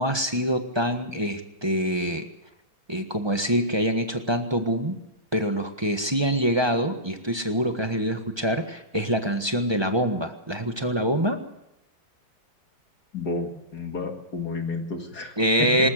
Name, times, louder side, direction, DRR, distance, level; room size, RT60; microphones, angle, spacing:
voice 1, 0.0-2.2 2.9-5.0 5.3-11.4 15.4-15.9, equal, 15° right, 5 dB, 1.2 m, -25 dB
voice 2, 13.1-15.9, left 3 dB, 45° left, 4 dB, 2.6 m, -31 dB
20.0 x 19.5 x 6.6 m, 0.88 s
omnidirectional pair, 2.3 m